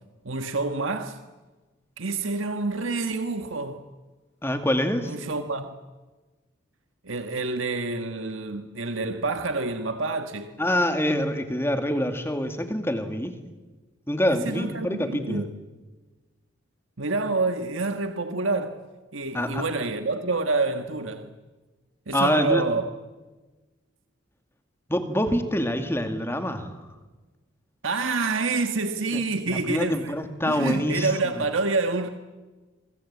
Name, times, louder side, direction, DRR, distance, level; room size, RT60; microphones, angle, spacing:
voice 1, 0.2-1.2 2.0-3.8 5.0-5.8 7.0-10.6 14.3-15.5 17.0-18.8 19.1-21.3 22.1-22.8 27.8-30.2 30.4-32.1, right 3 dB, 80° right, 1.6 m, -27 dB
voice 2, 4.4-5.1 10.6-13.3 14.1-15.5 19.3-19.6 22.1-22.6 24.9-26.7 29.1-29.2 29.5-31.1, left 1 dB, 10° left, 2.3 m, -25 dB
28.0 x 23.5 x 8.6 m
head